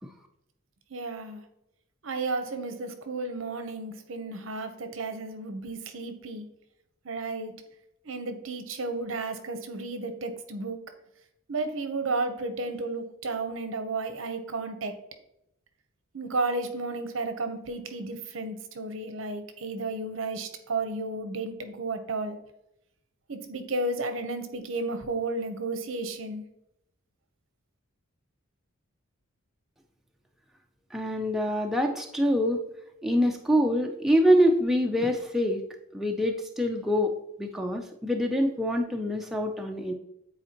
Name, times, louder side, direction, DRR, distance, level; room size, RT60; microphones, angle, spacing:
voice 1, 0.9-1.4 2.0-6.5 7.0-7.5 8.0-10.8 11.5-14.9 16.1-22.4 23.3-26.4, right 3 dB, 65° right, 8 dB, 0.8 m, -33 dB
voice 2, 30.9-32.6 33.0-35.6 35.9-39.9, equal, ahead, 2 dB, 0.4 m, -25 dB
8.9 x 4.2 x 2.9 m, 0.82 s
head